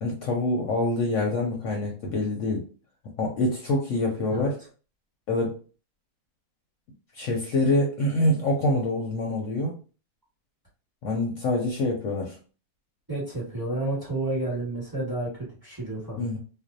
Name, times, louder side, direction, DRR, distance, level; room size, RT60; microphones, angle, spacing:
voice 1, 0.0-2.6 3.2-4.6 5.3-5.6 7.1-9.8 11.0-12.4 16.2-16.4, left 1 dB, 70° left, 0 dB, 0.8 m, -25 dB
voice 2, 13.1-16.3, right 2 dB, 15° right, -7 dB, 1.1 m, -31 dB
2.5 x 2.0 x 2.6 m, 0.37 s
omnidirectional pair, 1.6 m